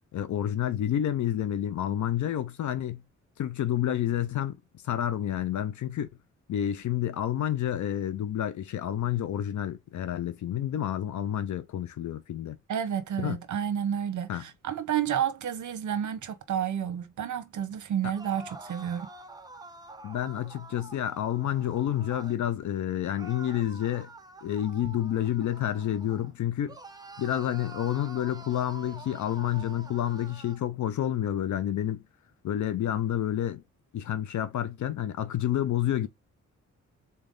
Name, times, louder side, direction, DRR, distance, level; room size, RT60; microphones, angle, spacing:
voice 1, 0.1-3.0 3.4-4.6 4.8-6.1 6.5-12.6 13.2-13.4 14.3-14.4 20.0-24.1 24.4-26.8 27.2-32.0 32.4-33.6 33.9-36.1, left 11 dB, 75° left, 0.6 m, -29 dB
voice 2, 12.7-19.1, right 9 dB, 75° right, 0.9 m, -30 dB
sound 1, 18.1-22.4 23.1-26.3 26.7-30.6, right 2 dB, 15° right, 0.6 m, -47 dB
3.9 x 3.4 x 3.9 m
wide cardioid pair, 130°, 30 cm